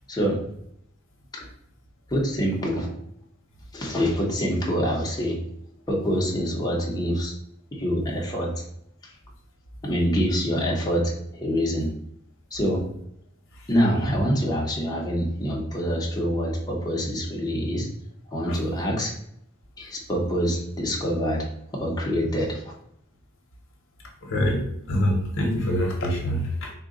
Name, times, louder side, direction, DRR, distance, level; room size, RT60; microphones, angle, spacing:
voice 1, 0.1-0.4 1.3-1.5 2.1-2.9 3.7-5.4 5.9-7.3 7.7-8.6 9.0-9.2 9.8-11.9 12.5-12.8 13.7-17.9 18.3-19.1 19.8-22.6, equal, 20° left, -3 dB, 0.7 m, -25 dB
voice 2, 24.2-26.7, equal, 65° left, 0 dB, 0.8 m, -25 dB
3.7 x 2.2 x 3.7 m, 0.71 s
head